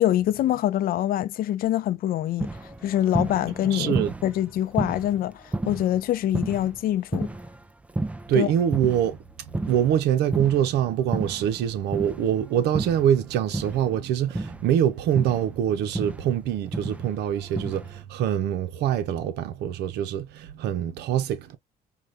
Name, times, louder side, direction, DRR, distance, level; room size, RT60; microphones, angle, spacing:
voice 1, 0.0-2.5 2.8-3.9 4.2-7.3 8.3-8.5, left 12 dB, 60° left, 0.5 m, -25 dB
sound 1, 2.4-9.2 9.5-14.0 14.3-18.0, right 2 dB, 10° right, 0.4 m, -33 dB
voice 2, 3.7-4.1 8.3-9.2 9.6-21.6, right 10 dB, 80° right, 0.7 m, -24 dB
4.8 x 2.3 x 2.5 m
cardioid pair, 110°, 17 cm